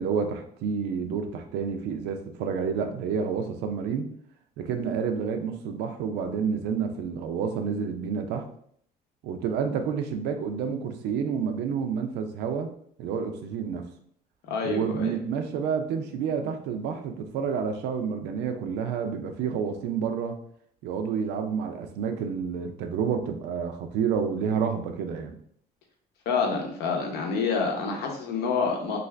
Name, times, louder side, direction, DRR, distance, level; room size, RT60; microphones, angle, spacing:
voice 1, 0.0-4.1 4.6-8.5 9.2-12.7 13.0-13.9 14.6-20.4 20.8-25.3, right 6 dB, 85° right, 5 dB, 0.5 m, -29 dB
voice 2, 14.5-15.1 26.3-29.0, left 5 dB, 80° left, 1 dB, 0.8 m, -27 dB
2.5 x 2.4 x 3.2 m, 0.64 s
cardioid pair, 110°, 17 cm